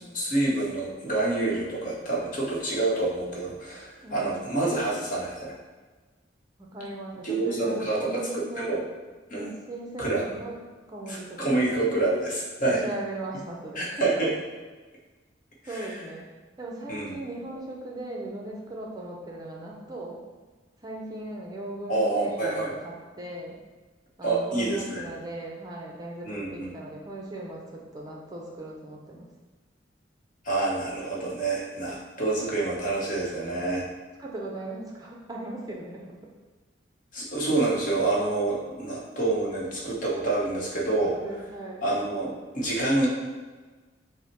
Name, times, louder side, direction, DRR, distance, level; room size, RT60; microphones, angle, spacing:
voice 1, 0.1-5.5 7.2-8.8 9.3-9.5 10.0-10.2 11.1-12.8 13.8-14.3 15.7-15.9 16.9-17.2 21.9-22.7 24.2-25.1 26.2-26.7 30.4-33.9 37.1-41.1 41.8-43.1, right 2 dB, 45° left, -4 dB, 1.0 m, -27 dB
voice 2, 4.0-4.5 6.6-8.8 9.3-10.6 10.9-11.7 12.7-14.0 15.7-16.3 16.6-20.2 20.8-23.6 24.2-29.3 34.2-36.2 41.1-41.8, right 2 dB, 20° right, -2 dB, 0.5 m, -38 dB
5.4 x 2.1 x 4.5 m, 1.3 s
head